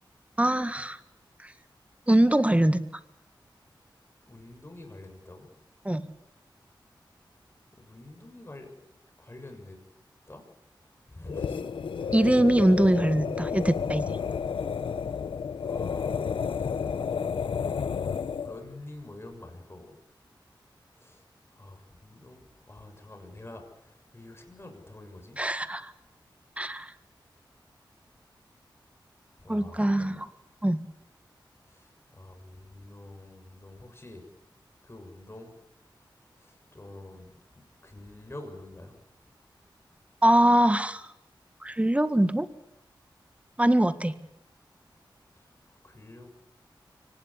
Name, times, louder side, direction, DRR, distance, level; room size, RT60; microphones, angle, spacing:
voice 1, 0.4-1.0 2.1-2.8 5.8-6.1 12.1-14.0 25.4-25.9 26.6-26.9 29.5-30.3 30.6-30.8 40.2-41.1 41.6-42.5 43.6-44.1, right 1 dB, 15° right, 12 dB, 1.7 m, -23 dB
voice 2, 4.3-5.5 7.8-8.7 9.2-9.8 10.3-10.4 11.1-11.7 12.6-12.8 15.6-20.0 20.9-21.2 21.5-25.4 29.4-30.2 31.6-34.2 34.8-35.6 36.4-39.0 45.4-46.3, left 2 dB, 30° left, 4 dB, 6.7 m, -47 dB
sound 1, 11.3-18.6, left 6 dB, 90° left, 0.8 m, -31 dB
24.0 x 18.5 x 8.5 m, 0.84 s
cardioid pair, 55°, 8 cm